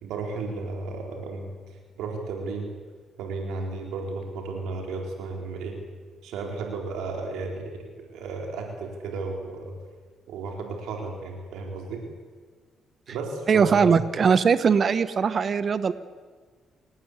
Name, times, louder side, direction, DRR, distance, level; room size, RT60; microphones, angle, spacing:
voice 1, 0.0-1.5 2.0-2.7 3.2-5.8 6.2-9.8 10.3-12.0 13.1-14.0, right 3 dB, 90° right, 2 dB, 4.4 m, -33 dB
voice 2, 13.5-15.9, right 6 dB, 45° right, 13 dB, 1.1 m, -20 dB
28.5 x 18.5 x 8.4 m, 1.5 s
cardioid pair, 90°, 0 cm